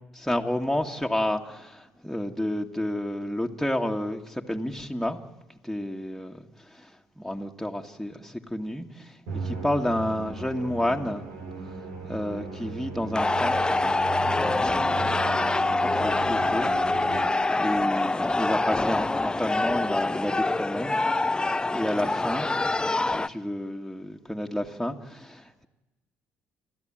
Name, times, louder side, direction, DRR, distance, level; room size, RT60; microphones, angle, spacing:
voice 1, 0.2-5.2 5.6-6.4 6.8-6.9 7.2-11.2 12.1-13.9 14.2-14.8 15.1-15.2 15.5-16.7 17.5-21.0 21.7-22.5 23.0-25.7, left 1 dB, ahead, 1 dB, 2.0 m, -30 dB
Musical instrument, 9.3-17.8, right 4 dB, 85° right, 3.4 m, -37 dB
sound 1, 13.1-23.3, left 2 dB, 15° left, 0.7 m, -25 dB
29.5 x 12.5 x 9.0 m, 1.1 s
hypercardioid pair, 65°, 5 cm